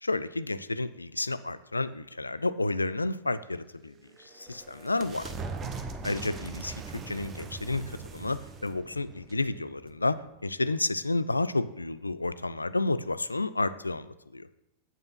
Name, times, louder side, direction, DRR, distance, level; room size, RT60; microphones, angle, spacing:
voice 1, 0.0-3.9 4.2-5.3 6.0-14.1 14.3-14.5, left 2 dB, 80° left, 15 dB, 0.3 m, -31 dB
sound 1, 3.9-10.3, right 4 dB, 25° right, 0.9 m, -41 dB
7.5 x 5.4 x 5.6 m, 0.93 s
figure-of-eight pair, 90°, 0 cm